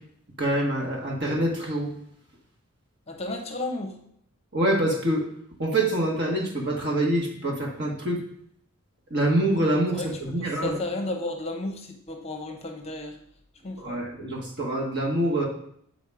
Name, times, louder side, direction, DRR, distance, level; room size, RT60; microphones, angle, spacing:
voice 1, 0.4-1.9 4.5-5.2 5.6-8.2 9.1-10.0 10.3-10.7 13.8-15.5, right 1 dB, 50° right, -2 dB, 1.6 m, -25 dB
voice 2, 3.1-4.0 9.9-10.1 10.4-13.2 13.6-14.0, left 2 dB, 30° left, 3 dB, 0.8 m, -33 dB
8.1 x 4.0 x 4.9 m, 0.68 s
head